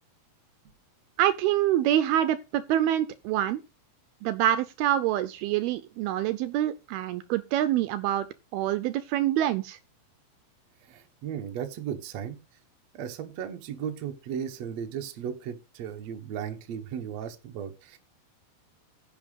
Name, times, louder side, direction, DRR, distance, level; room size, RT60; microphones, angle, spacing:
voice 1, 1.2-3.6 4.2-8.3 8.5-9.8, right 12 dB, 80° right, 2.4 m, -26 dB
voice 2, 10.9-12.4 12.9-18.0, right 8 dB, 65° right, 1.8 m, -36 dB
10.5 x 5.9 x 5.5 m
omnidirectional pair, 4.8 m